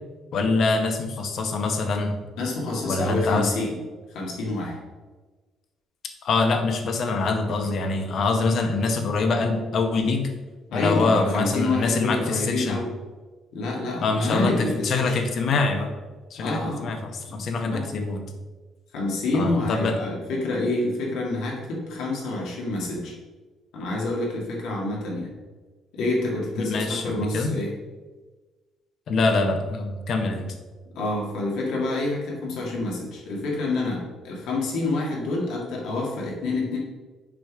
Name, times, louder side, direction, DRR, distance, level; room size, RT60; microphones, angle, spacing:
voice 1, 0.3-2.2 2.9-3.5 6.2-10.3 10.7-12.8 14.0-14.6 14.8-15.9 16.3-17.0 17.3-18.2 19.3-19.9 26.6-27.5 29.1-30.5, left 3 dB, 55° left, 5 dB, 0.8 m, -24 dB
voice 2, 2.4-3.8 4.1-4.8 10.7-12.9 13.5-15.2 16.4-16.9 17.2-17.4 17.6-17.9 18.9-23.1 23.7-25.3 25.9-27.7 31.0-36.8, left 2 dB, 80° left, -2 dB, 1.8 m, -27 dB
6.0 x 4.8 x 3.5 m, 1.3 s
cardioid pair, 120°, 0 cm